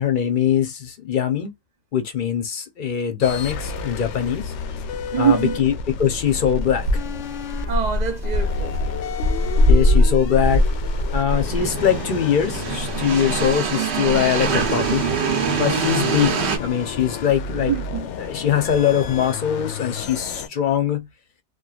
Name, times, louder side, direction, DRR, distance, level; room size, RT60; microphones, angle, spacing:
voice 1, 0.0-1.5 1.9-4.5 5.2-7.0 9.7-10.7 11.1-15.1 15.6-17.7 18.2-21.1, left 9 dB, 55° left, 0.7 m, -22 dB
sound 1, 3.2-20.5, left 6 dB, 85° left, 0.9 m, -32 dB
voice 2, 5.1-5.6 7.7-8.8 17.7-18.1, right 8 dB, 45° right, 0.6 m, -23 dB
sound 2, 6.5-16.6, right 1 dB, 70° right, 1.0 m, -22 dB
3.0 x 2.4 x 2.3 m
omnidirectional pair, 1.2 m